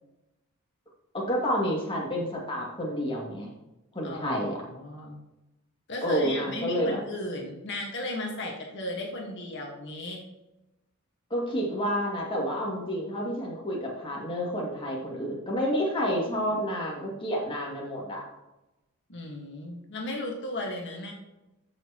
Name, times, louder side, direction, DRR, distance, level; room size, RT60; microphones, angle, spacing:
voice 1, 1.1-3.5 3.9-4.6 6.0-7.0 11.3-18.2, equal, 25° left, -3 dB, 2.4 m, -29 dB
voice 2, 4.0-4.4 4.7-5.2 5.9-10.2 19.1-21.1, left 1 dB, 55° left, 0 dB, 1.6 m, -35 dB
14.0 x 6.5 x 3.0 m, 0.99 s
head